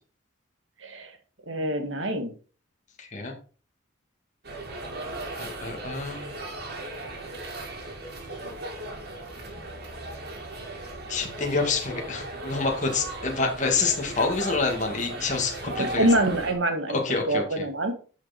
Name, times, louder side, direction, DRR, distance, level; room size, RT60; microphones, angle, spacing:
voice 1, 1.5-2.3 15.8-17.0 17.3-17.9, right 1 dB, 85° right, 2.0 m, -25 dB
voice 2, 3.0-3.3 5.3-6.3 11.1-16.1 16.9-17.7, left 4 dB, 40° left, 2.4 m, -27 dB
sound 1, 4.4-16.5, right 2 dB, 60° right, 3.2 m, -37 dB
11.0 x 6.1 x 4.4 m
head